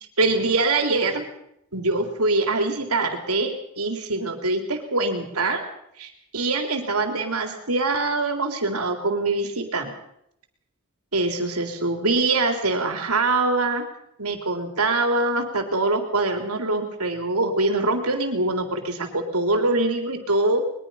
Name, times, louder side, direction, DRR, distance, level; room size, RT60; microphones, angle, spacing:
voice 1, 0.2-1.2 1.7-5.7 6.0-9.9 11.1-13.8 14.2-20.6, right 2 dB, 90° right, 5 dB, 3.7 m, -24 dB
22.0 x 21.0 x 5.8 m, 0.75 s
head